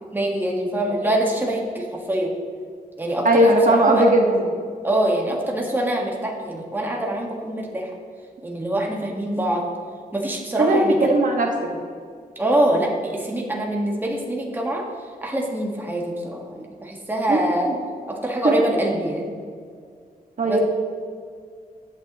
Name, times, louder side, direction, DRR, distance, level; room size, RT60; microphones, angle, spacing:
voice 1, 0.1-2.3 3.0-4.1 4.8-7.9 8.4-9.7 10.1-11.1 12.3-14.9 15.2-17.7 18.1-19.3 20.4-20.6, right 1 dB, 15° right, -1 dB, 1.6 m, -24 dB
voice 2, 3.2-4.4 10.6-11.5 17.3-17.4 18.4-18.5 20.4-20.6, right 1 dB, 60° right, 0 dB, 1.7 m, -17 dB
14.5 x 8.9 x 3.0 m, 2.1 s
wide cardioid pair, 110°, 15 cm